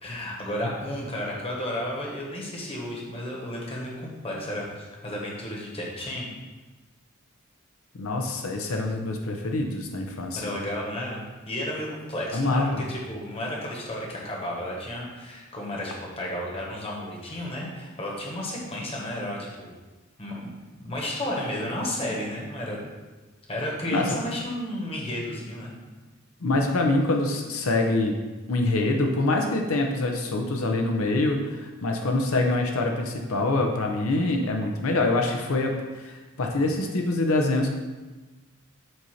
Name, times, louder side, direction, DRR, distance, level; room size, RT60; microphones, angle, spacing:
voice 1, 0.0-6.3 10.3-19.7 20.2-22.8 23.5-25.7, left 1 dB, 30° left, -3 dB, 1.3 m, -33 dB
voice 2, 7.9-10.4 12.3-12.9 23.9-24.2 26.4-28.2 28.5-37.7, left 2 dB, 85° left, 3 dB, 0.7 m, -25 dB
7.7 x 2.7 x 5.8 m, 1.2 s
head